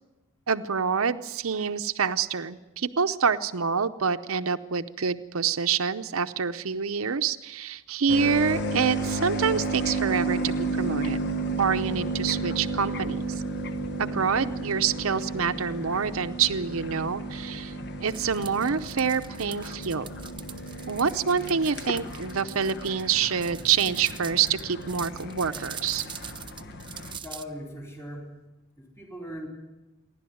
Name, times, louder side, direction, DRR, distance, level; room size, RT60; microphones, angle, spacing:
voice 1, 0.5-11.2 11.6-13.4 14.0-17.7 18.0-20.1 20.9-26.0, right 6 dB, 85° right, 10 dB, 0.7 m, -27 dB
sound 1, 8.1-27.2, right 2 dB, 55° left, 1.3 m, -33 dB
sound 2, 18.1-27.4, right 8 dB, 25° right, 0.9 m, -43 dB
voice 2, 27.1-28.4 28.8-29.5, equal, 15° left, 0 dB, 4.1 m, -39 dB
28.0 x 11.5 x 9.4 m, 1.1 s
head